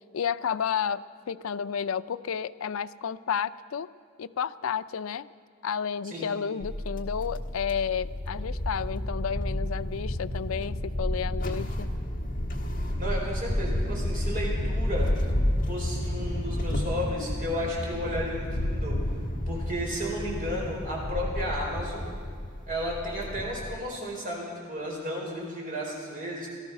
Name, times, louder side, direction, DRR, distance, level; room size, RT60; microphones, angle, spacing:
voice 1, 0.1-3.9 4.2-5.3 5.6-11.9, left 7 dB, 75° left, 15 dB, 0.4 m, -31 dB
voice 2, 6.0-6.4 13.0-15.1 15.7-19.0 19.5-22.1 22.7-26.5, equal, 40° right, -3 dB, 4.4 m, -33 dB
sound 1, 6.6-23.8, left 1 dB, 40° left, 1.4 m, -31 dB
18.0 x 13.0 x 5.9 m, 2.1 s
head